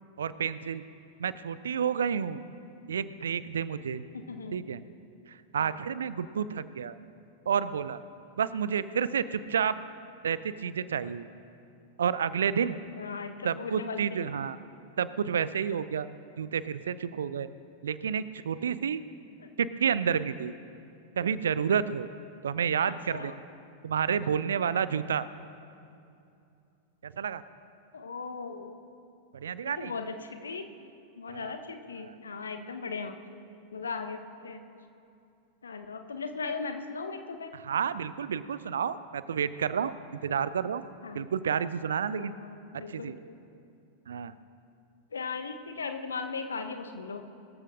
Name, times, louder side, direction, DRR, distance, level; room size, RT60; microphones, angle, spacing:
voice 1, 0.2-0.8 1.2-2.4 2.9-4.0 4.5-4.8 5.3-7.0 7.5-8.0 8.4-9.7 10.2-11.3 12.0-12.8 13.4-14.6 15.0-16.1 16.4-17.5 17.8-19.0 19.6-20.5 21.2-22.1 22.4-23.3 23.8-25.3 27.0-27.4 29.3-29.9 31.3-31.6 32.0-32.1 37.5-39.9 40.2-40.8 41.1-42.3 42.7-43.2 44.1-44.3, right 7 dB, 65° right, 16 dB, 0.4 m, -30 dB
voice 2, 4.1-4.5 5.6-6.0 12.9-14.0 22.9-23.3 27.9-28.7 29.6-30.6 31.2-33.1 33.7-34.6 35.6-37.6 41.0-41.3 42.1-43.2 45.1-47.2, left 4 dB, 70° left, 7 dB, 1.0 m, -38 dB
22.5 x 14.0 x 2.5 m, 2.6 s
figure-of-eight pair, 90°, 0 cm